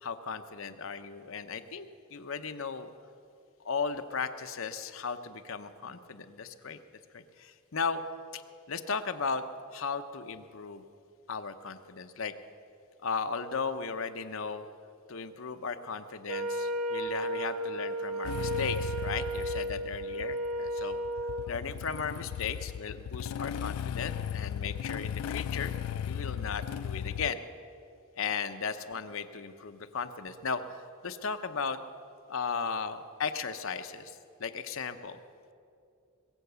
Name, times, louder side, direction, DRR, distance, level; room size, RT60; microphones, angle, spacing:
voice 1, 0.0-2.9 3.6-6.8 7.1-8.0 8.3-8.4 8.7-9.4 9.7-10.8 11.3-12.3 13.0-14.7 15.1-21.0 21.5-25.7 26.1-27.4 28.2-30.8 31.0-31.8 32.3-35.2, left 5 dB, 60° left, 9 dB, 0.7 m, -36 dB
Wind instrument woodwind instrument, 16.3-21.5, right 1 dB, 90° right, 0.8 m, -34 dB
Motorcycle / Engine starting, 18.2-27.3, left 8 dB, 80° left, 0.3 m, -36 dB
21.5 x 7.9 x 6.8 m, 2.4 s
head